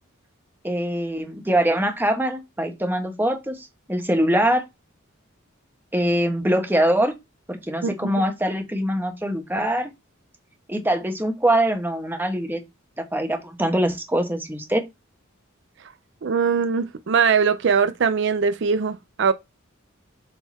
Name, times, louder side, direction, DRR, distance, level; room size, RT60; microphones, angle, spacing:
voice 1, 0.6-4.6 5.9-7.1 7.5-9.9 10.7-12.6 13.0-14.8, right 1 dB, 10° right, 1.1 m, -23 dB
voice 2, 16.2-19.3, right 6 dB, 60° right, 0.5 m, -21 dB
7.3 x 3.8 x 4.1 m
head